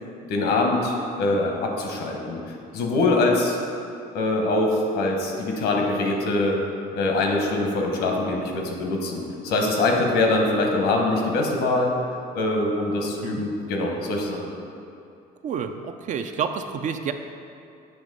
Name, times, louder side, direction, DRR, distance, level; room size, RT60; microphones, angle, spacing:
voice 1, 0.3-3.6 4.1-6.6 6.9-11.9 12.3-14.5, left 2 dB, 80° left, 1 dB, 1.0 m, -23 dB
voice 2, 15.4-17.1, right 7 dB, 50° right, 7 dB, 0.4 m, -29 dB
7.9 x 3.0 x 5.2 m, 2.5 s
cardioid pair, 110°, 17 cm